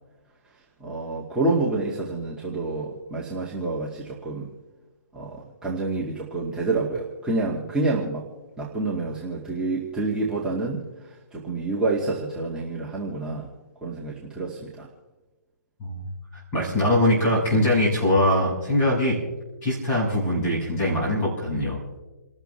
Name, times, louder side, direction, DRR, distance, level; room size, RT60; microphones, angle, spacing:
voice 1, 0.8-4.5 5.1-8.3 8.6-10.8 11.3-13.5 13.8-14.9, right 3 dB, 5° right, -6 dB, 2.2 m, -28 dB
voice 2, 16.5-19.2 19.6-21.8, left 1 dB, 20° left, -6 dB, 6.4 m, -22 dB
29.5 x 13.0 x 3.4 m, 1.2 s
hypercardioid pair, 145°, 11 cm